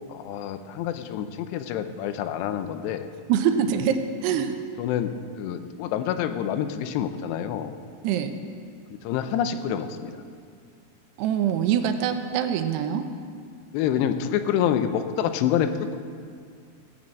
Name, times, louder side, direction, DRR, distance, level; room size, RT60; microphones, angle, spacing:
voice 1, 0.1-3.1 4.8-7.7 8.9-10.2 13.7-16.0, left 9 dB, 85° left, 9 dB, 2.8 m, -27 dB
voice 2, 3.3-4.6 8.0-8.3 11.2-13.1, right 8 dB, 90° right, 7 dB, 2.8 m, -24 dB
16.5 x 7.6 x 7.4 m, 2.1 s
omnidirectional pair, 4.9 m